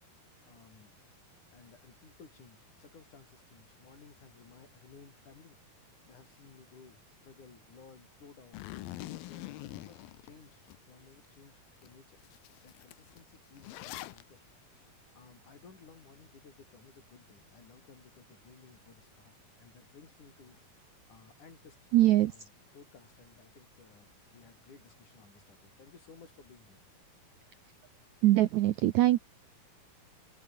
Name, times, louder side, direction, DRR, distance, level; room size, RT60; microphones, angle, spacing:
voice 1, 0.1-0.9 1.5-5.6 6.1-8.6 9.0-10.6 10.9-12.2 12.6-14.5 14.9-21.8 22.3-22.4 22.7-26.8, left 5 dB, 55° left, 5.8 m, -57 dB
Zipper (clothing), 8.5-10.8 11.2-11.3 11.8-11.9 12.2-14.2, left 17 dB, 80° left, 2.6 m, -44 dB
voice 2, 21.9-22.5 28.2-29.2, right 15 dB, 85° right, 1.6 m, -23 dB
omnidirectional pair, 4.4 m